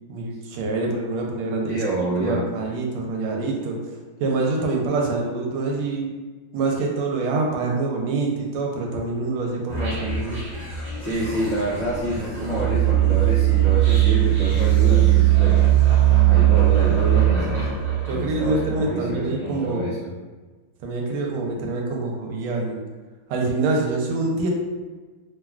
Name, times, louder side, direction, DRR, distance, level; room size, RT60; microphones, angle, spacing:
voice 1, 0.1-3.8 4.2-6.1 6.5-10.4 18.1-19.9 20.8-22.8 23.3-24.5, right 3 dB, 85° right, 0 dB, 1.4 m, -25 dB
voice 2, 1.7-2.5 11.0-15.6 16.2-17.7 18.1-20.1, right 1 dB, 75° left, -11 dB, 0.6 m, -27 dB
sound 1, 9.7-18.9, right 12 dB, 20° right, 0.9 m, -19 dB
3.5 x 2.2 x 2.3 m, 1.3 s
omnidirectional pair, 2.3 m